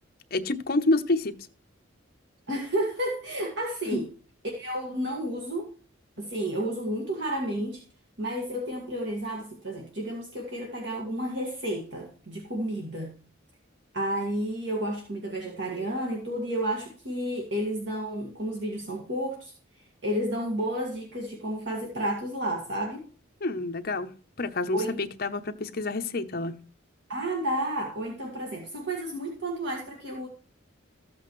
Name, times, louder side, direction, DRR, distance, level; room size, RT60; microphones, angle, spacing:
voice 1, 0.3-1.3 3.9-4.0 23.4-24.1 24.4-26.6, left 2 dB, 45° left, 0.8 m, -28 dB
voice 2, 2.5-4.1 4.6-5.7 6.2-7.8 8.2-13.1 13.9-19.5 20.0-23.0 24.7-24.9 27.1-30.3, right 1 dB, 60° right, 1.9 m, -31 dB
14.0 x 8.0 x 3.1 m
head